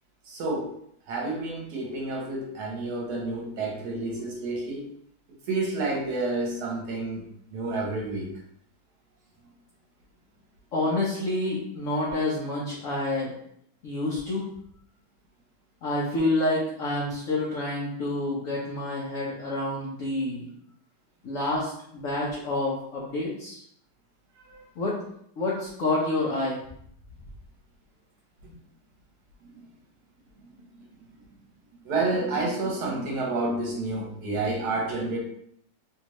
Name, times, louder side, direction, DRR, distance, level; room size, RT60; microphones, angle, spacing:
voice 1, 0.3-0.7 1.1-4.9 5.5-7.2 7.5-8.3 24.5-24.6 31.8-35.2, right 2 dB, 65° right, -1 dB, 1.2 m, -29 dB
voice 2, 10.7-13.3 13.8-14.4 15.8-20.5 21.2-23.6 24.8-25.0 25.4-26.6, left 2 dB, 60° left, -5 dB, 0.9 m, -28 dB
3.2 x 2.8 x 3.0 m, 0.69 s
omnidirectional pair, 2.0 m